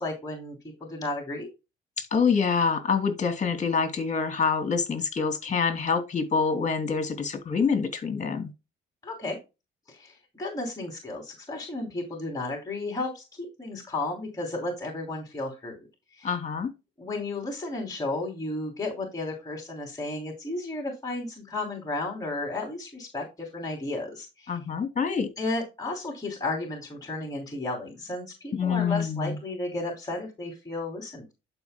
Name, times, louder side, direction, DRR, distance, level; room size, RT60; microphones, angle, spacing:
voice 1, 0.0-1.5 9.0-9.4 9.9-13.2 13.6-15.8 16.2-16.3 17.0-24.6 25.4-31.3, left 2 dB, 20° left, 3.1 m, -33 dB
voice 2, 2.0-8.5 16.2-16.7 24.5-25.3 28.5-29.4, left 5 dB, 35° left, 2.8 m, -26 dB
12.0 x 5.4 x 2.2 m
cardioid pair, 90°, 20 cm